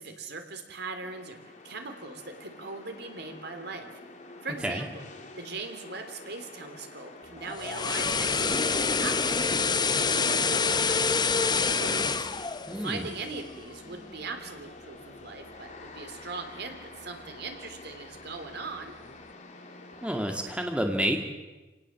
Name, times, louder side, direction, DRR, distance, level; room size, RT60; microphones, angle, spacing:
voice 1, 0.0-1.4 1.6-3.9 4.4-5.0 5.4-12.3 12.7-18.9, right 3 dB, 65° right, 6 dB, 3.4 m, -40 dB
sound 1, 1.0-20.6, left 2 dB, 45° left, 3.3 m, -48 dB
sound 2, 7.4-13.6 13.9-14.1, left 5 dB, 25° left, 0.8 m, -27 dB
voice 2, 12.7-13.1 20.0-21.2, equal, 5° right, 3 dB, 2.1 m, -29 dB
28.5 x 18.5 x 7.5 m, 1.2 s
head